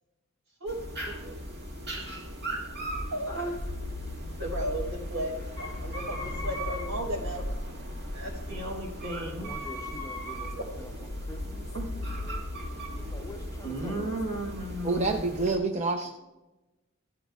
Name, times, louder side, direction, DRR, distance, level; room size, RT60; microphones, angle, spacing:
sound 1, 0.7-15.6, equal, 50° right, 2.0 m, -38 dB
voice 1, 1.0-1.3 1.9-2.2 2.9-3.7 4.4-7.4 8.1-9.5 11.7-11.9 13.6-15.2, right 1 dB, 80° right, -2 dB, 4.1 m, -35 dB
sound 2, 3.6-13.5, left 1 dB, 50° left, 0.5 m, -40 dB
voice 2, 9.4-14.2, left 1 dB, 15° left, 4 dB, 0.7 m, -47 dB
voice 3, 14.8-16.1, right 3 dB, 35° right, 3 dB, 0.6 m, -27 dB
15.5 x 12.0 x 2.3 m, 1.0 s
head